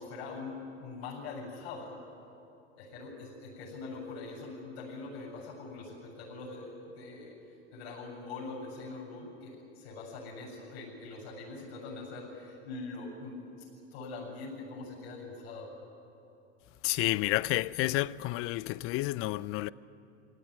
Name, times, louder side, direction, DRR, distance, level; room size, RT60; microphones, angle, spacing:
voice 1, 0.0-2.0 2.8-7.4 7.7-13.7 13.9-15.7, left 3 dB, 60° left, 7.7 m, -43 dB
voice 2, 16.8-19.7, left 18 dB, 40° left, 0.6 m, -30 dB
23.5 x 17.0 x 9.8 m
hypercardioid pair, 100°, 34 cm